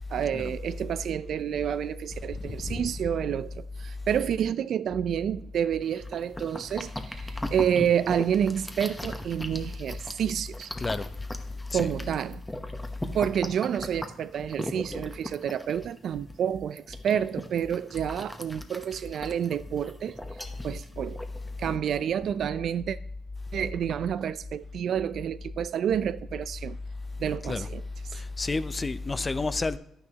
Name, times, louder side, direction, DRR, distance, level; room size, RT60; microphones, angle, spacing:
voice 1, 0.1-10.7 11.7-12.4 13.1-20.2 20.6-21.2 21.6-23.0 23.5-26.8 27.2-27.8, right 9 dB, 65° right, 0.4 m, -29 dB
voice 2, 2.4-2.8 10.8-11.1 11.7-11.9 27.5-27.7 28.1-29.8, left 3 dB, 25° left, 0.5 m, -30 dB
sound 1, 5.8-21.6, left 1 dB, 10° left, 0.9 m, -40 dB
11.0 x 9.5 x 2.9 m
cardioid pair, 90°, 0 cm